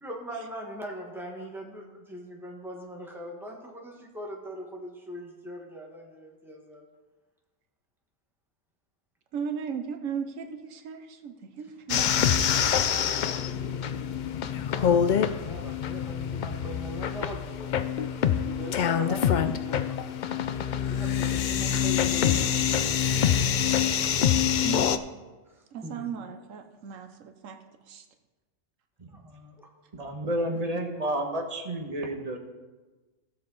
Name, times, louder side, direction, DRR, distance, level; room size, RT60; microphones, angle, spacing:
voice 1, 0.0-6.8 14.2-23.0 24.3-24.7 25.8-26.1 29.1-29.7, right 1 dB, ahead, -1 dB, 1.5 m, -41 dB
voice 2, 9.3-12.6 24.6-25.0 25.7-27.6 27.9-28.0, right 6 dB, 85° right, 7 dB, 1.2 m, -37 dB
sound 1, 11.9-25.0, left 8 dB, 70° left, 0.4 m, -26 dB
voice 3, 29.9-32.4, right 1 dB, 30° right, 2 dB, 1.3 m, -30 dB
16.0 x 6.7 x 4.0 m, 1.2 s
omnidirectional pair, 1.3 m